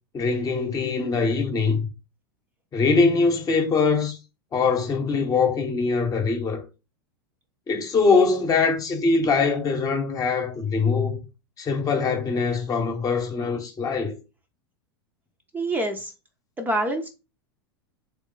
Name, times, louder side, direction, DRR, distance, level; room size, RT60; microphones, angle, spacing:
voice 1, 0.1-1.9 2.7-4.2 4.5-6.6 7.7-11.2 11.6-14.2, left 4 dB, 30° left, 1.0 m, -22 dB
voice 2, 15.5-16.1 16.6-17.1, right 1 dB, 15° right, 0.6 m, -26 dB
3.1 x 3.1 x 3.8 m
hypercardioid pair, 95°, 13 cm